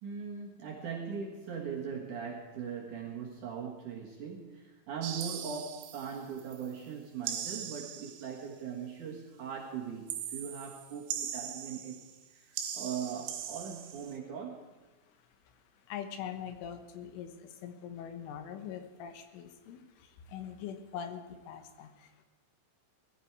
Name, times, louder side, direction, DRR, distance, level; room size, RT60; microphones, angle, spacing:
voice 1, 0.0-12.0 12.3-14.6, right 6 dB, 55° right, -2 dB, 2.4 m, -40 dB
sound 1, 5.0-6.7 7.2-8.4 10.1-12.2 12.5-14.2, right 9 dB, 75° right, 3.1 m, -40 dB
voice 2, 15.0-22.3, left 8 dB, 85° left, 8 dB, 3.7 m, -43 dB
19.0 x 14.5 x 4.7 m, 1.2 s
omnidirectional pair, 5.5 m